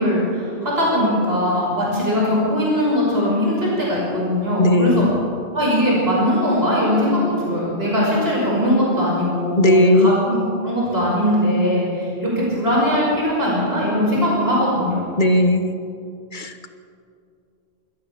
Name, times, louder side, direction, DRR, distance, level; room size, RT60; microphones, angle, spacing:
voice 1, 0.0-5.0 5.5-10.4 10.6-15.1, equal, 75° right, -5 dB, 6.2 m, -20 dB
voice 2, 4.6-5.1 9.6-10.1 15.2-15.7 16.3-16.7, left 1 dB, 50° left, 8 dB, 1.5 m, -16 dB
28.5 x 14.0 x 6.9 m, 2.5 s
omnidirectional pair, 1.0 m